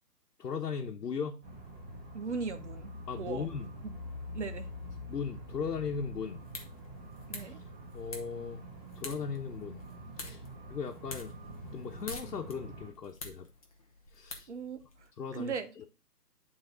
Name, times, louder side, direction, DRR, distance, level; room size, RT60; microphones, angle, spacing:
voice 1, 0.4-1.4 3.1-3.7 5.1-6.4 7.4-7.6 7.9-8.6 8.9-9.8 10.2-10.4 10.7-11.4 11.7-13.5 14.1-14.5 15.2-15.8, left 6 dB, 80° left, 1.3 m, -37 dB
sound 1, 1.4-12.9, equal, 15° right, 1.9 m, -46 dB
voice 2, 2.1-2.9 3.2-3.5 4.3-4.7 7.3-7.6 14.5-14.8 15.3-15.7, right 5 dB, 45° right, 1.0 m, -37 dB
sound 2, 6.2-15.1, left 3 dB, 20° left, 0.8 m, -48 dB
9.2 x 4.0 x 3.9 m
hypercardioid pair, 165°, 48 cm